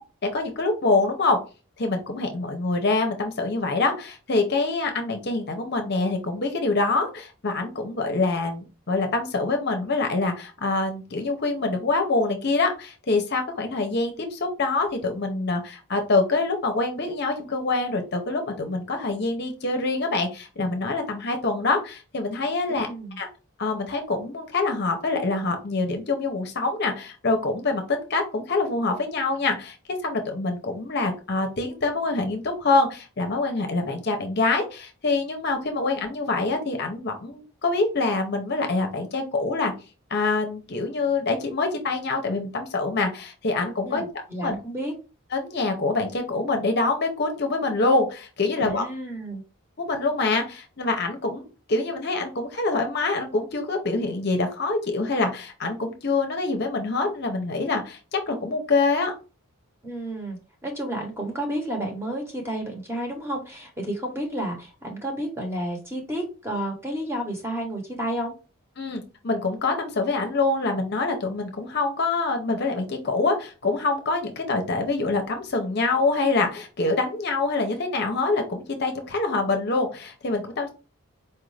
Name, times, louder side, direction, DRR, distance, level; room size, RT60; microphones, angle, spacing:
voice 1, 0.2-1.4 1.8-22.9 23.2-23.3 23.6-39.7 40.1-44.0 44.4-44.6 45.3-48.9 49.8-59.1 68.8-80.7, left 3 dB, 50° left, 4 dB, 0.7 m, -25 dB
voice 2, 22.7-23.2 43.8-44.9 48.6-49.4 59.8-68.3, right 1 dB, 10° right, 1 dB, 0.9 m, -31 dB
4.4 x 2.5 x 3.2 m, 0.33 s
head